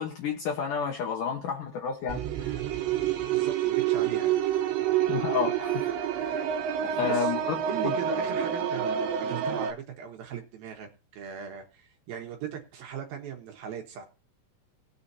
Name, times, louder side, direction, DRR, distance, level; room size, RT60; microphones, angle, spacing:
voice 1, 0.0-2.6 5.1-5.9 6.2-6.4 6.8-7.6 7.8-7.9, left 7 dB, 65° left, 2.2 m, -31 dB
sound 1, 2.1-9.7, right 10 dB, 85° right, 3.3 m, -28 dB
voice 2, 3.3-4.4 6.9-7.3 7.6-14.0, right 7 dB, 65° right, 2.9 m, -38 dB
19.5 x 7.0 x 2.8 m
omnidirectional pair, 5.0 m